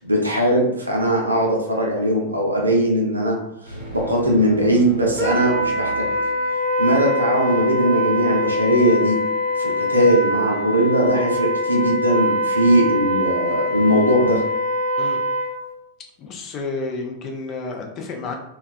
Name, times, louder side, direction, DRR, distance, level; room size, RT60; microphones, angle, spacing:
voice 1, 0.0-3.4 3.7-6.1 6.8-9.3 9.6-14.4, right 1 dB, 80° right, -1 dB, 0.5 m, -19 dB
sound 1, 3.6-7.1, right 2 dB, 75° left, 0.9 m, -37 dB
Wind instrument woodwind instrument, 5.2-15.6, left 1 dB, 10° right, 0.8 m, -23 dB
voice 2, 16.2-18.3, left 3 dB, 35° left, 2 dB, 0.4 m, -30 dB
2.3 x 2.2 x 2.4 m, 0.81 s
figure-of-eight pair, 90°, 0 cm